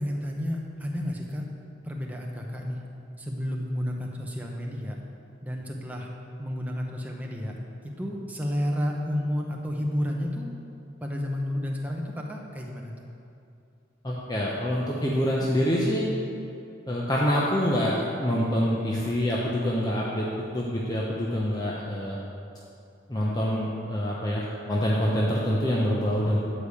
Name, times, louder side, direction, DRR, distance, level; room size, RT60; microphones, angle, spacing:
voice 1, 0.0-1.4 1.8-2.8 3.2-5.0 5.4-6.1 6.4-7.6 8.0-10.5 11.0-13.0, equal, 10° right, -1 dB, 0.9 m, -31 dB
voice 2, 14.0-16.0 16.9-20.3 20.5-22.2 23.1-26.4, equal, 20° left, -5 dB, 0.8 m, -26 dB
10.0 x 4.9 x 7.0 m, 2.6 s
head